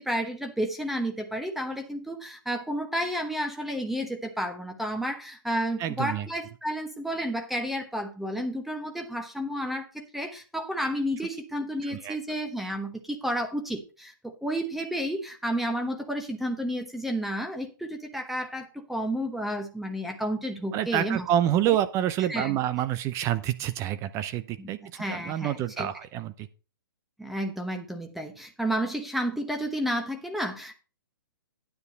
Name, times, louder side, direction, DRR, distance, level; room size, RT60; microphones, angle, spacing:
voice 1, 0.6-2.1 2.5-4.1 4.4-4.5 4.8-5.1 5.5-8.8 9.1-9.8 10.1-10.3 10.7-12.9 13.2-13.5 14.4-15.2 15.4-17.6 18.3-18.4 18.9-21.2 22.3-22.4 25.0-25.2 27.3-28.1 28.6-28.9 29.1-30.0 30.3-30.5, equal, ahead, 1.0 m, -30 dB
voice 2, 5.8-6.3 11.8-12.2 20.7-24.8 25.1-26.5, right 11 dB, 25° right, 0.6 m, -27 dB
9.6 x 8.2 x 4.1 m
hypercardioid pair, 130°, 12 cm